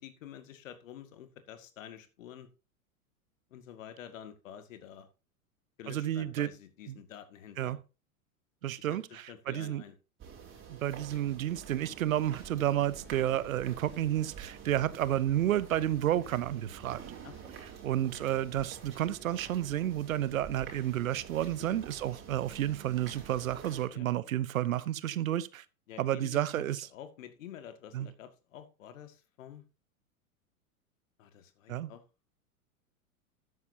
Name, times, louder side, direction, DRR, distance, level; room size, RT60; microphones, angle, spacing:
voice 1, 0.0-2.5 3.5-5.1 5.8-7.8 8.8-9.9 17.2-17.5 21.6-21.8 23.9-24.0 25.9-26.6 26.9-29.6 31.2-32.0, left 10 dB, 60° left, 2.1 m, -49 dB
voice 2, 5.9-6.5 6.9-7.0 7.6-7.8 8.6-9.8 10.7-17.0 17.8-25.6 26.0-26.9 27.9-28.1 31.7-31.9, right 12 dB, 65° right, 1.0 m, -31 dB
sound 1, 10.2-23.9, right 7 dB, 25° right, 4.2 m, -48 dB
12.5 x 9.5 x 2.8 m
figure-of-eight pair, 95°, 44 cm